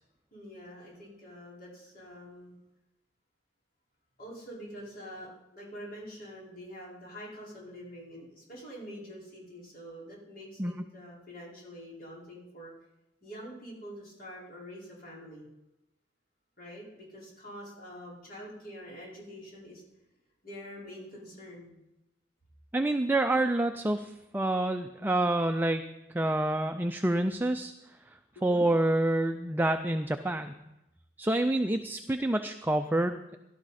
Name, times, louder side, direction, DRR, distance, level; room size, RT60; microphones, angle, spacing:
voice 1, 0.3-2.5 4.2-12.7 13.2-15.5 16.6-19.8 20.4-21.8 28.3-28.7, equal, 55° left, -5 dB, 4.9 m, -46 dB
voice 2, 22.7-25.8 26.1-27.7 28.4-30.6 31.2-33.2, right 1 dB, 10° right, 7 dB, 0.4 m, -27 dB
17.0 x 11.5 x 4.2 m, 0.93 s
head